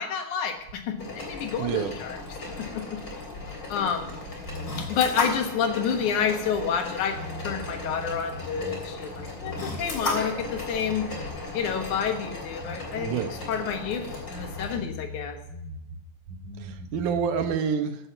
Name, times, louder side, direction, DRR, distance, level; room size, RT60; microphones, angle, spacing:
voice 1, 0.0-2.2 2.6-3.0 3.7-4.1 4.8-11.1 11.5-15.4, left 7 dB, 80° left, 5 dB, 2.8 m, -29 dB
sound 1, 0.6-6.8 7.0-10.1 10.4-12.3 12.5-16.0 16.3-17.5, equal, 50° right, 4.8 m, -41 dB
sound 2, 1.0-14.7, left 2 dB, 35° left, 3.8 m, -36 dB
voice 2, 1.6-1.9 12.9-13.3 16.6-18.0, right 7 dB, 85° right, 7 dB, 2.6 m, -28 dB
15.0 x 7.8 x 5.7 m, 0.83 s
omnidirectional pair, 3.5 m